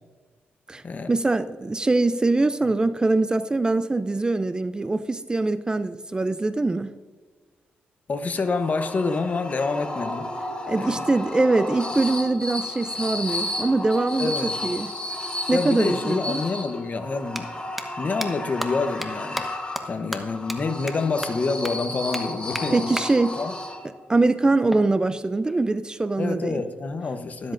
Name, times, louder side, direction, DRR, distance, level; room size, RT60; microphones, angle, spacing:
voice 1, 1.1-6.9 10.7-14.9 15.5-16.4 22.7-23.4 24.1-26.6, right 2 dB, 20° right, 0.4 m, -23 dB
voice 2, 8.1-10.3 10.8-11.0 14.2-14.5 15.5-17.5 18.0-19.4 19.9-22.9 23.4-23.5 26.2-27.5, left 4 dB, 40° left, 0.9 m, -27 dB
sound 1, 8.4-24.1, left 1 dB, 25° left, 1.4 m, -33 dB
sound 2, 17.3-17.4 17.8-17.9 18.2-18.3 18.6-18.7 19.0-19.1 19.4-19.5 19.8-19.9 20.1-20.2 20.5-20.6 20.9-21.0 21.2-21.3 21.6-21.7 22.1-22.2 22.6-22.7 23.0-23.1 24.7-25.7, equal, 5° right, 1.1 m, -32 dB
13.0 x 13.0 x 2.6 m
cardioid pair, 90°, 4 cm